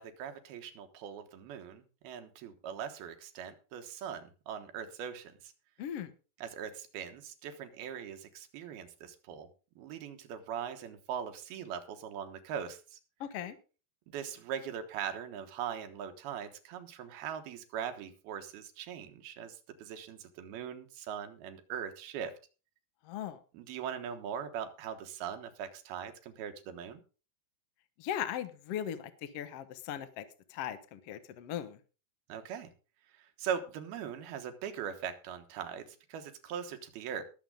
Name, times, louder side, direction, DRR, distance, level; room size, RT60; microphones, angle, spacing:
voice 1, 0.0-5.5 6.4-9.5 9.8-13.0 14.1-22.3 23.5-27.0 32.3-32.7 33.1-37.2, right 8 dB, 90° right, 7 dB, 3.3 m, -41 dB
voice 2, 5.8-6.1 13.2-13.6 23.0-23.4 28.0-30.2 30.5-31.8, left 10 dB, 80° left, 11 dB, 1.4 m, -38 dB
20.0 x 7.4 x 3.8 m, 0.35 s
omnidirectional pair, 4.3 m